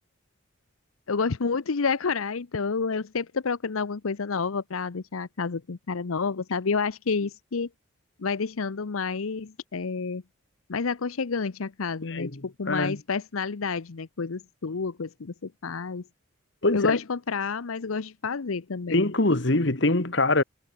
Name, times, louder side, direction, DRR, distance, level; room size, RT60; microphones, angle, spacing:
voice 1, 1.1-7.7 8.2-10.2 10.7-16.0 16.7-19.1, left 5 dB, 90° left, 0.7 m, -29 dB
voice 2, 12.1-13.0 16.6-17.0 18.9-20.4, left 2 dB, 55° left, 1.7 m, -24 dB
head